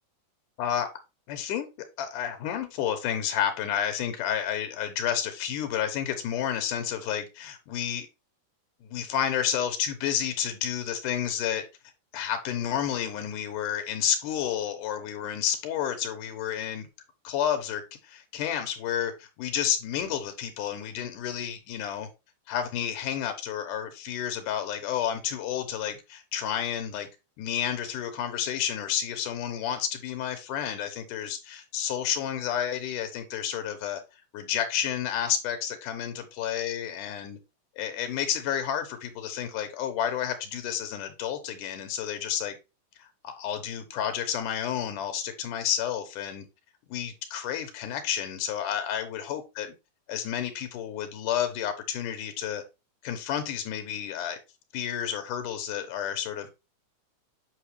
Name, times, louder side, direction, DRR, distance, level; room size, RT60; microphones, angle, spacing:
voice 1, 1.3-1.7 2.0-8.1 8.9-11.6 12.1-16.9 17.3-22.1 22.5-27.1 27.4-34.0 34.3-37.4 37.8-42.6 43.0-46.5 46.9-49.7 50.1-52.6 53.0-54.4 54.7-56.5, left 9 dB, 90° left, 2.6 m, -30 dB
8.0 x 5.8 x 3.2 m
omnidirectional pair, 3.6 m